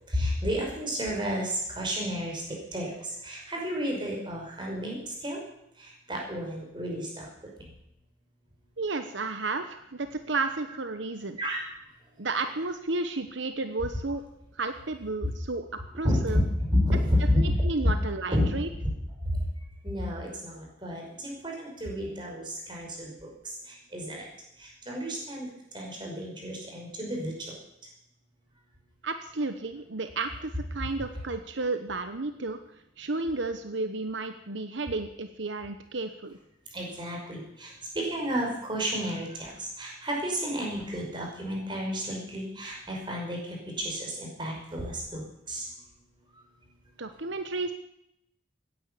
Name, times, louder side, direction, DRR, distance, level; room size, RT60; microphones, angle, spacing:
voice 1, 0.1-5.4 5.8-7.3 11.4-11.7 15.2-15.3 16.0-17.4 17.8-17.9 18.3-18.5 18.8-18.9 19.3-19.5 19.8-24.3 24.6-25.5 25.7-27.6 36.7-45.7, equal, 25° right, -1 dB, 5.5 m, -31 dB
voice 2, 8.8-11.4 12.2-14.2 14.6-15.7 15.9-16.4 17.4-18.7 29.0-32.6 33.0-36.4 47.0-47.7, right 3 dB, 80° right, 8 dB, 1.1 m, -32 dB
16.5 x 10.5 x 8.4 m, 0.80 s
head